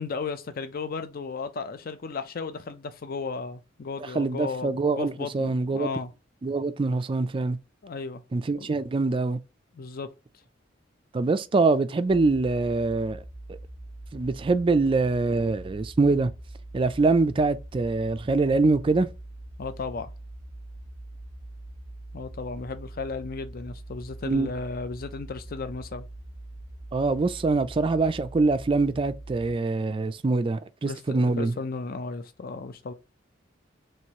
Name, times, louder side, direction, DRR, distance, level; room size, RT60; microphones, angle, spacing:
voice 1, 0.0-6.1 7.8-8.2 8.6-8.7 9.7-10.1 19.6-20.1 22.1-26.0 30.8-32.9, left 4 dB, 50° left, 0.5 m, -35 dB
voice 2, 4.1-5.9 6.4-7.6 8.3-9.4 11.1-13.2 13.5-13.6 14.1-16.3 16.7-19.1 24.3-24.5 26.9-31.5, right 3 dB, 25° right, 0.3 m, -24 dB
sound 1, 12.1-29.5, right 1 dB, 80° left, 1.4 m, -43 dB
3.1 x 2.9 x 4.5 m
head